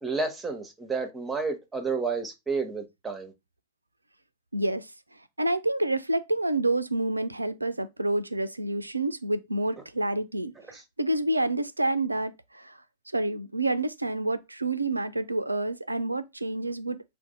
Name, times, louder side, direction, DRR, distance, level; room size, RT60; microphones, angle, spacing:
voice 1, 0.0-3.3 10.7-10.8, right 4 dB, 10° right, 0.8 m, -31 dB
voice 2, 4.5-4.9 5.4-12.8 13.1-17.0, right 2 dB, 85° right, 0.3 m, -28 dB
2.5 x 2.1 x 4.0 m
figure-of-eight pair, 90°, 0 cm